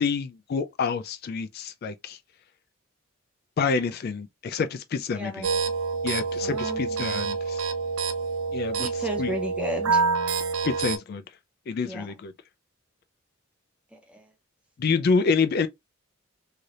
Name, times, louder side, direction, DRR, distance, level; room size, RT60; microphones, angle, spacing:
voice 1, 0.0-2.2 3.6-5.5 6.0-7.6 8.5-9.3 10.6-11.2 11.7-12.3 14.8-15.7, left 5 dB, 50° left, 0.3 m, -27 dB
voice 2, 5.1-5.6 6.4-7.2 8.8-10.0 11.8-12.1 13.9-14.2, right 1 dB, 5° right, 0.7 m, -34 dB
sound 1, 5.4-11.0, right 4 dB, 80° right, 0.6 m, -27 dB
3.2 x 2.7 x 2.4 m
head